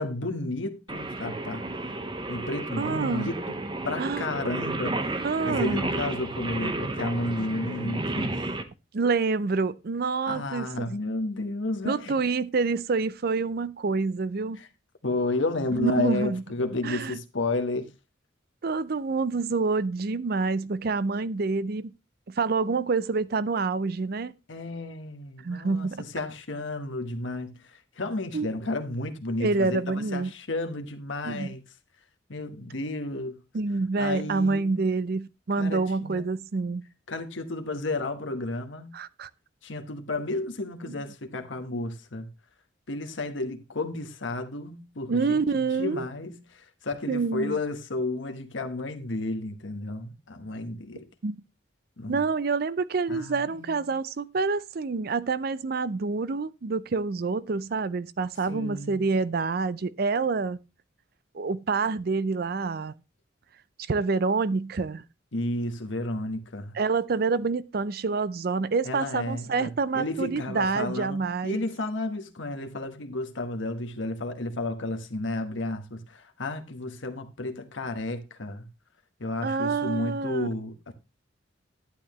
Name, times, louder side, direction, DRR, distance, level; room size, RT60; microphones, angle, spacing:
voice 1, 0.0-1.7 2.3-3.5 3.8-8.3 10.3-12.1 14.6-14.7 15.0-17.9 24.5-31.6 32.3-33.4 34.0-34.8 35.5-36.2 37.1-38.9 39.6-42.3 42.9-51.1 52.0-52.2 53.1-53.8 58.5-59.0 65.3-66.7 68.8-78.7 79.2-80.9, left 2 dB, 70° left, 1.2 m, -32 dB
Singing, 0.9-8.6, right 2 dB, 25° right, 0.8 m, -32 dB
voice 2, 2.8-3.3 4.0-4.2 5.2-5.9 8.9-10.9 11.9-14.6 15.7-16.4 16.8-17.1 18.6-21.9 22.3-24.4 25.4-26.0 28.3-28.5 29.4-30.3 31.2-31.5 33.5-36.8 38.9-39.3 40.9-41.0 45.1-46.0 47.1-47.6 51.2-51.4 52.1-60.6 61.3-62.9 63.9-65.0 66.7-71.6 79.4-80.5, right 4 dB, 50° right, 0.5 m, -27 dB
11.5 x 8.6 x 3.1 m
head